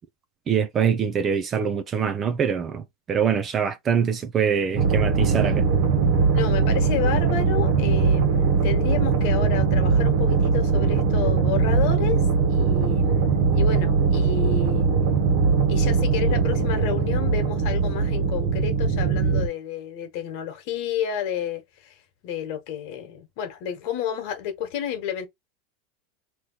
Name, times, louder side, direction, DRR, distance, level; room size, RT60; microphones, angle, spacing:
voice 1, 0.5-2.8 3.1-5.6, right 7 dB, 20° right, 0.5 m, -24 dB
sound 1, 4.8-19.5, right 5 dB, 65° right, 1.4 m, -21 dB
voice 2, 6.3-14.9 15.7-21.9 22.2-25.3, left 9 dB, 50° left, 1.4 m, -31 dB
3.1 x 2.9 x 3.9 m
supercardioid pair, 160°, 0 cm